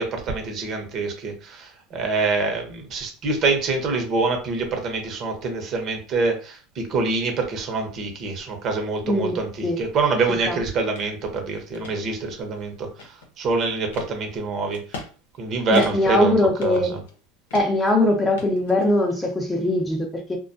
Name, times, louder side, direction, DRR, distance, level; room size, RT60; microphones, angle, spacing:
voice 1, 0.0-14.8 15.4-17.0, right 3 dB, 40° right, 0.8 m, -25 dB
voice 2, 9.0-9.4 9.6-9.8 10.5-10.6 15.7-17.0 17.5-20.4, left 1 dB, 10° left, 0.6 m, -21 dB
sound 1, 10.9-11.1 11.5-11.9 12.5-13.4 13.9-14.1 14.7-15.1 15.4-15.5 15.7-16.2 16.6-17.2 17.5-17.9 18.4-19.2, left 4 dB, 85° left, 0.7 m, -39 dB
2.2 x 2.2 x 2.6 m
supercardioid pair, 115°, 0 cm